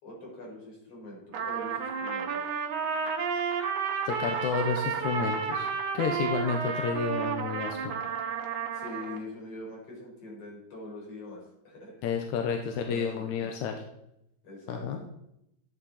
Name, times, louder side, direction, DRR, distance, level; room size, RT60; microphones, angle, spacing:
voice 1, 0.0-2.6 8.7-11.9 12.9-13.6 14.4-15.0, left 2 dB, 50° left, -2 dB, 5.3 m, -43 dB
Trumpet, 1.3-9.2, right 6 dB, 85° right, 2.6 m, -31 dB
voice 2, 4.1-5.7 5.9-8.0 12.0-13.8 14.7-15.0, left 6 dB, 90° left, 4 dB, 2.4 m, -31 dB
13.5 x 8.8 x 4.3 m, 0.80 s
omnidirectional pair, 3.3 m